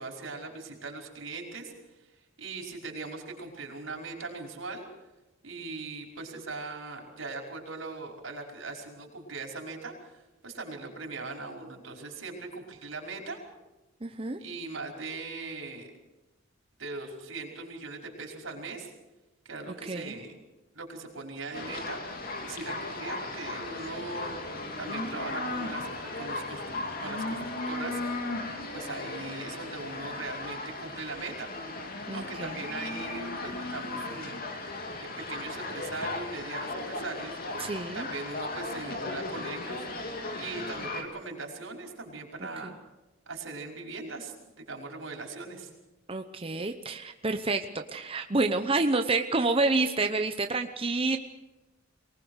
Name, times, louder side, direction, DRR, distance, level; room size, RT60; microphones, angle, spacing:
voice 1, 0.0-1.7 2.4-4.9 5.4-13.4 14.4-15.9 16.8-18.9 19.5-20.4 20.7-22.0 22.4-28.2 28.5-31.5 32.1-34.4 35.0-37.6 37.9-39.9 40.4-42.7 43.3-45.7, right 3 dB, 85° right, 1 dB, 5.2 m, -40 dB
voice 2, 14.0-14.4 19.8-20.2 32.1-32.6 37.6-38.1 42.6-42.7 46.1-51.2, right 3 dB, 30° right, 6 dB, 0.9 m, -28 dB
sound 1, 21.5-41.0, left 2 dB, 50° left, 3.0 m, -36 dB
23.5 x 19.5 x 6.5 m, 1.0 s
head